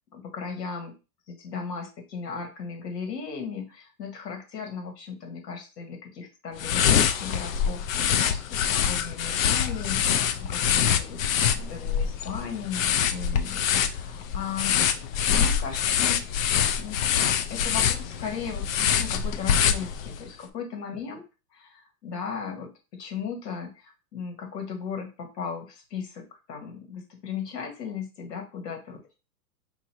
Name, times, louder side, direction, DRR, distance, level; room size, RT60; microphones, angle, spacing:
voice 1, 0.1-1.0 1.3-11.2 11.5-14.8 15.3-16.4 16.8-17.0 17.5-21.2 21.5-29.2, left 6 dB, 80° left, 3 dB, 2.0 m, -37 dB
sound 1, 6.6-20.3, left 8 dB, 55° left, 0.6 m, -25 dB
4.9 x 2.8 x 3.0 m, 0.29 s
hypercardioid pair, 155°, 48 cm